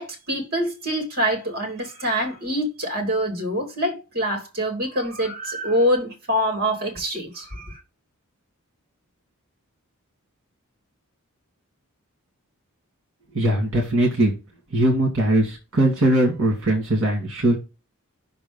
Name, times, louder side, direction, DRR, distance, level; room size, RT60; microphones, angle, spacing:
voice 1, 0.0-7.8, equal, 45° right, 2.6 m, -25 dB
voice 2, 13.3-14.3 14.7-17.5, right 1 dB, 60° right, 2.2 m, -20 dB
6.0 x 3.9 x 5.2 m
head